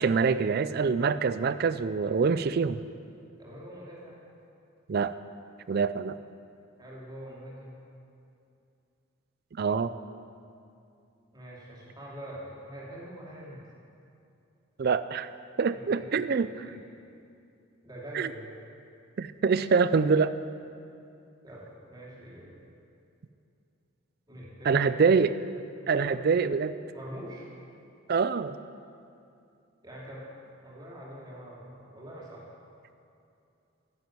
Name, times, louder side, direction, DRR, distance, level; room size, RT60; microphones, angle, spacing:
voice 1, 0.0-2.8 4.9-5.1 5.7-6.2 9.6-9.9 14.8-15.3 15.6-16.6 18.1-18.3 19.2-20.3 24.6-25.3 25.9-26.7 28.1-28.6, right 5 dB, 45° right, 14 dB, 0.4 m, -25 dB
voice 2, 3.4-4.2 6.8-7.8 11.3-13.6 15.7-16.8 17.8-18.5 21.4-22.6 24.3-24.9 25.8-26.2 26.9-27.5 29.8-30.3 30.6-32.4, equal, 20° right, -6 dB, 2.8 m, -44 dB
10.5 x 7.7 x 9.0 m, 2.6 s
head